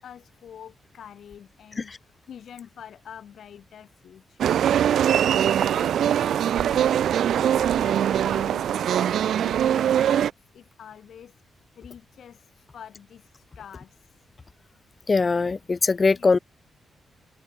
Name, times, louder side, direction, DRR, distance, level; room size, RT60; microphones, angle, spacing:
voice 1, 0.0-6.9 7.3-11.4 11.8-14.1 16.1-16.3, left 9 dB, 60° left, 6.2 m, -46 dB
sound 1, 4.4-10.3, right 10 dB, 70° right, 0.5 m, -22 dB
voice 2, 15.1-16.4, left 4 dB, 25° left, 0.5 m, -21 dB
wide cardioid pair, 175°, 0 cm